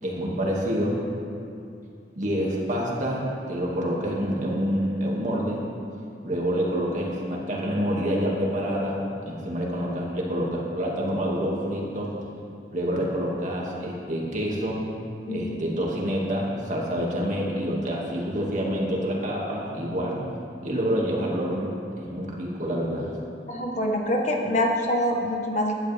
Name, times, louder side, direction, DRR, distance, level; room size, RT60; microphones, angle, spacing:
voice 1, 0.0-1.0 2.2-5.6 6.2-12.1 12.7-14.8 15.3-20.2 20.6-23.1, equal, 45° right, -3 dB, 2.2 m, -27 dB
voice 2, 23.5-25.7, left 1 dB, 45° left, 1 dB, 1.3 m, -25 dB
16.5 x 11.5 x 3.5 m, 2.5 s
head